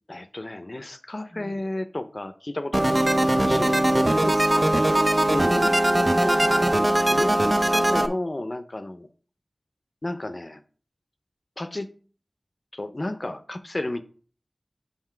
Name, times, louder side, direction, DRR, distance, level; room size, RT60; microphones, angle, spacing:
voice 1, 0.1-4.3 5.3-5.8 7.1-9.1 10.0-10.6 11.6-11.9 12.7-14.0, left 1 dB, 45° left, 10 dB, 0.7 m, -33 dB
sound 1, 2.7-8.1, right 1 dB, 35° right, 0.7 m, -20 dB
voice 2, 3.9-5.0 6.2-6.9, equal, ahead, 9 dB, 0.9 m, -36 dB
5.9 x 5.6 x 4.5 m, 0.43 s
wide cardioid pair, 40°, 0 cm